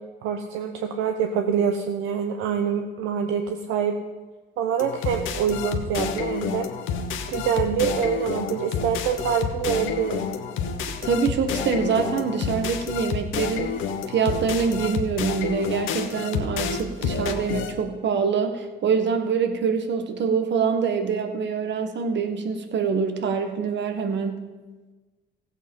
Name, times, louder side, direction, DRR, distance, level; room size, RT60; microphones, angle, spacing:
voice 1, 0.2-4.0 4.6-6.7 7.3-10.2, right 7 dB, 85° right, 5 dB, 0.8 m, -25 dB
sound 1, 4.8-17.7, left 6 dB, 80° left, 1.1 m, -29 dB
voice 2, 11.0-13.7 14.1-24.3, right 6 dB, 65° right, 6 dB, 1.5 m, -25 dB
15.5 x 8.2 x 5.6 m, 1.3 s
supercardioid pair, 60°, 20 cm